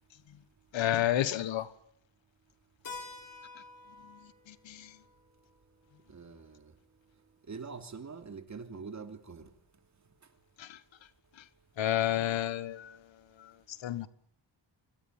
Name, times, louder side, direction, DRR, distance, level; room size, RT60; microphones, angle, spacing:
voice 1, 0.7-1.7 4.5-5.0 10.6-10.8 11.8-13.0 13.4-13.5 13.8-14.1, left 12 dB, 85° left, 1.5 m, -30 dB
Keyboard (musical), 2.8-7.3, left 4 dB, 45° left, 5.7 m, -50 dB
voice 2, 6.1-6.7 7.5-9.4, right 5 dB, 40° right, 3.1 m, -44 dB
26.0 x 25.0 x 7.6 m
wide cardioid pair, 135°, 44 cm